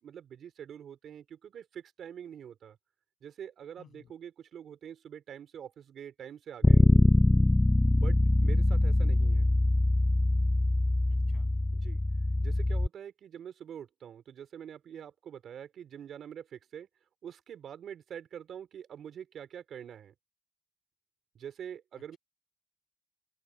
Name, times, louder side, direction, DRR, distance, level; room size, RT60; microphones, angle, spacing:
voice 1, 0.0-2.8 3.2-6.9 7.9-9.5 11.7-12.0 12.4-16.9 17.2-20.1 21.3-22.2, right 9 dB, 85° right, 4.4 m, -45 dB
voice 2, 3.8-4.1 11.1-11.5, left 9 dB, 80° left, 7.6 m, -58 dB
Bass guitar, 6.6-12.9, left 2 dB, 20° left, 0.8 m, -23 dB
open air
cardioid pair, 60°, 0 cm